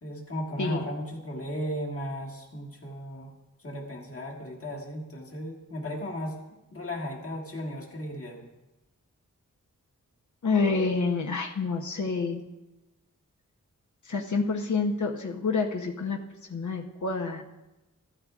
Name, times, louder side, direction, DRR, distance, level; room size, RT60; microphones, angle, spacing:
voice 1, 0.0-3.3 3.6-6.4 6.7-8.4, equal, 45° left, -1 dB, 1.8 m, -35 dB
voice 2, 10.4-12.4 14.1-16.2 16.5-17.4, left 4 dB, 65° left, 1 dB, 0.9 m, -28 dB
14.5 x 13.5 x 2.5 m, 1.0 s
wide cardioid pair, 115°, 31 cm